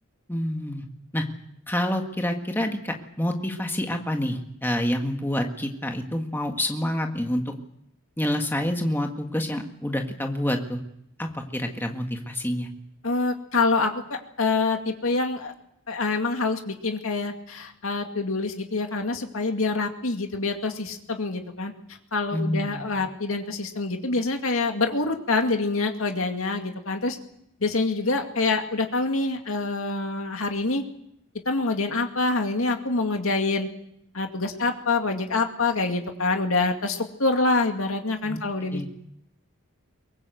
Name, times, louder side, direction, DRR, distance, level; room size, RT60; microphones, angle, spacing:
voice 1, 0.3-0.9 1.1-1.3 1.7-7.5 8.2-10.8 11.2-12.7 22.3-22.8 38.2-38.4 38.7-38.9, left 1 dB, 10° left, 3 dB, 1.8 m, -27 dB
voice 2, 13.0-15.5 15.9-21.7 22.1-27.2 27.6-30.8 31.5-33.7 34.1-38.9, left 3 dB, 85° left, 4 dB, 2.3 m, -26 dB
23.0 x 19.5 x 7.9 m, 0.78 s
head